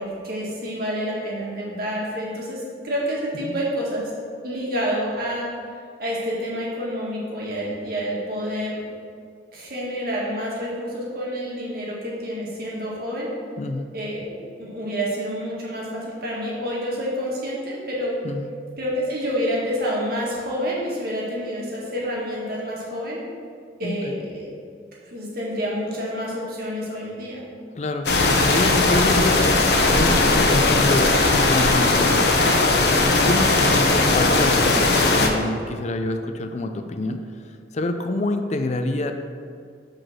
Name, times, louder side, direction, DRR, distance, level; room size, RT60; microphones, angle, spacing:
voice 1, 0.0-4.1 4.4-5.5 6.0-8.8 9.5-13.3 13.9-18.1 18.8-23.2 23.8-24.5 25.1-27.4, equal, 55° right, -5 dB, 1.9 m, -28 dB
voice 2, 13.6-13.9 18.2-18.5 23.8-24.2 27.8-28.1 28.5-29.5 29.9-31.1 31.5-32.3 33.1-33.6 33.9-37.2 37.7-39.1, left 2 dB, 40° left, 6 dB, 0.4 m, -27 dB
sound 1, 28.1-35.3, left 2 dB, 65° left, 0.8 m, -18 dB
6.0 x 5.1 x 6.2 m, 2.2 s
head